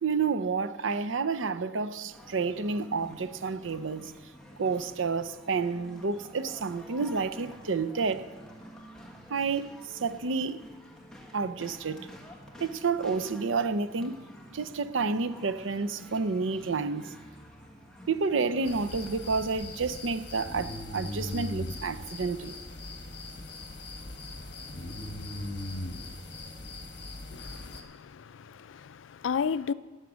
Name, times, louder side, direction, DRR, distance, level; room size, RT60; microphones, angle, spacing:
voice 1, 0.0-4.1 4.6-8.3 9.3-10.6 11.3-12.1 12.6-14.3 14.5-17.2 18.1-22.5, right 4 dB, 90° right, 0.6 m, -30 dB
sound 1, 2.1-19.3, equal, 5° left, 1.4 m, -50 dB
sound 2, 18.7-27.8, left 1 dB, 60° left, 1.4 m, -39 dB
voice 2, 27.3-29.7, left 6 dB, 85° left, 0.4 m, -33 dB
15.5 x 8.2 x 6.3 m
head